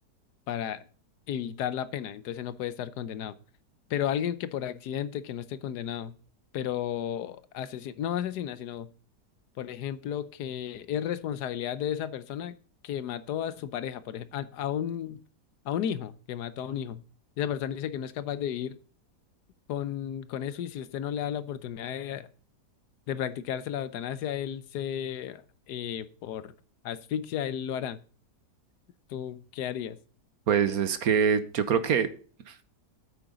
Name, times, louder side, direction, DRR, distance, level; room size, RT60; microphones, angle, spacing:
voice 1, 0.5-0.8 1.3-3.4 3.9-6.2 6.5-8.9 9.6-12.5 12.8-15.2 15.6-17.0 17.4-18.8 19.7-22.3 23.1-25.4 25.7-26.5 26.8-28.0 29.1-30.0, left 10 dB, 75° left, 1.3 m, -33 dB
voice 2, 30.5-32.1 32.5-32.6, right 7 dB, 60° right, 1.4 m, -24 dB
9.0 x 8.6 x 3.9 m
omnidirectional pair, 1.8 m